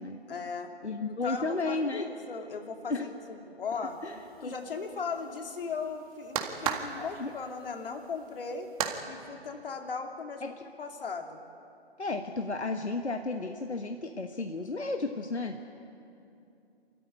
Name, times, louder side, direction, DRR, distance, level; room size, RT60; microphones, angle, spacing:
voice 1, 0.3-0.7 1.1-4.0 4.4-8.7 9.1-10.4 10.8-11.4, left 5 dB, 55° left, 4 dB, 2.7 m, -37 dB
voice 2, 0.8-2.1 2.9-3.1 4.0-4.5 7.0-7.3 10.4-10.5 12.0-15.6, left 3 dB, 85° left, 5 dB, 1.4 m, -33 dB
sound 1, 3.8-9.0, right 8 dB, 35° right, 1.8 m, -37 dB
27.5 x 14.0 x 9.8 m, 2.7 s
figure-of-eight pair, 140°, 33 cm